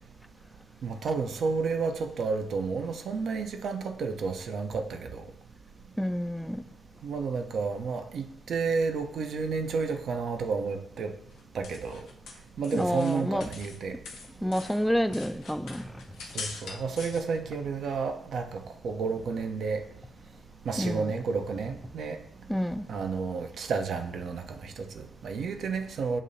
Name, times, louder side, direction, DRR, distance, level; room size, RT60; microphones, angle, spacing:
voice 1, 0.8-5.3 7.0-11.1 11.5-12.0 12.6-14.0 16.3-19.9 20.7-22.2 22.9-26.2, right 5 dB, 65° right, 0.5 m, -31 dB
voice 2, 6.0-6.6 12.7-13.5 14.4-15.9 20.8-21.1 22.5-22.9, equal, ahead, 0.3 m, -29 dB
sound 1, 11.3-13.8 14.0-17.2, left 4 dB, 75° left, 0.6 m, -43 dB
7.2 x 2.7 x 2.6 m
hypercardioid pair, 40°, 0 cm